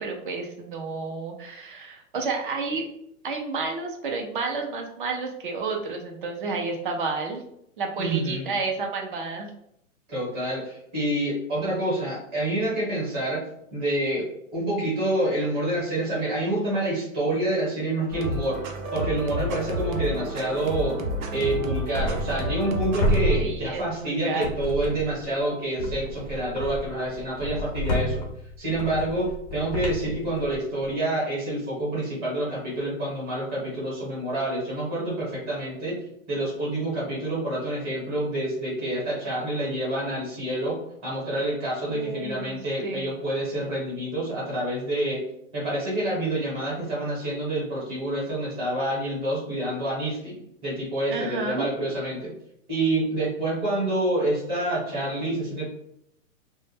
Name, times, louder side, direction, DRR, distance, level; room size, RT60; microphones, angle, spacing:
voice 1, 0.0-2.8 3.2-7.4 7.8-9.5 23.4-24.5 41.9-43.1 51.1-51.7, right 4 dB, 40° right, 3 dB, 0.4 m, -31 dB
voice 2, 8.0-8.5 10.1-13.4 13.7-18.6 18.9-20.9 21.3-28.2 28.6-36.0 36.3-45.2 45.5-52.3 52.7-55.6, right 1 dB, 15° right, -6 dB, 0.9 m, -27 dB
sound 1, 18.1-23.4, equal, 85° right, 0.6 m, -30 dB
sound 2, 21.9-22.7 23.0-24.1 24.4-25.2 25.8-30.9, equal, 35° left, 0.4 m, -30 dB
2.1 x 2.0 x 3.2 m, 0.73 s
hypercardioid pair, 155°, 41 cm